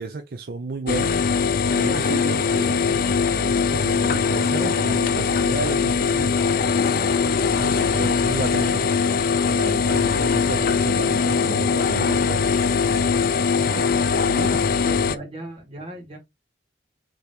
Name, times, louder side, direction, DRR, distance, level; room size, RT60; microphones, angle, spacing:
voice 1, 0.0-1.2 1.7-6.5 7.3-8.9 9.4-12.5 14.3-15.0, right 3 dB, 55° right, 0.5 m, -33 dB
sound 1, 0.9-15.2, left 5 dB, 50° left, 0.4 m, -21 dB
voice 2, 1.8-2.3 7.6-8.1 13.5-14.1 14.8-16.2, equal, 30° right, 2.0 m, -37 dB
Thunder, 4.0-13.0, left 1 dB, 15° left, 1.6 m, -47 dB
5.1 x 3.5 x 2.9 m
head